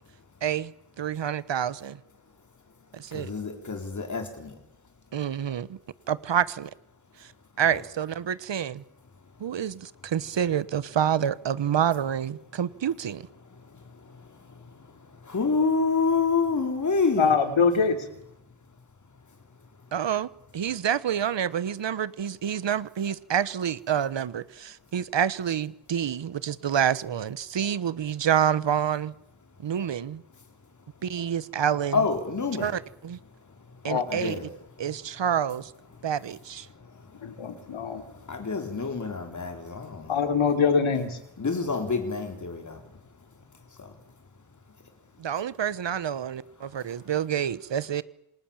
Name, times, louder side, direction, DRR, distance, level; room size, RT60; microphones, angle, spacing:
voice 1, 0.4-0.7 1.0-2.0 2.9-3.3 5.1-5.8 6.1-6.7 7.2-7.3 7.6-8.8 9.4-13.2 19.9-29.1 29.6-30.2 31.0-32.0 32.6-33.2 33.8-34.4 34.8-35.7 36.0-36.7 45.2-48.0, right 9 dB, 60° right, 1.1 m, -28 dB
voice 2, 3.1-4.6 7.7-7.8 13.5-17.3 31.9-32.8 34.1-34.5 36.7-40.3 41.4-43.0 43.8-43.9 46.9-47.0, left 4 dB, 35° left, 4.1 m, -29 dB
voice 3, 17.2-18.0 33.9-34.0 37.2-38.0 40.1-41.2, left 5 dB, 70° left, 3.4 m, -23 dB
27.5 x 27.0 x 7.3 m
wide cardioid pair, 175°, 50 cm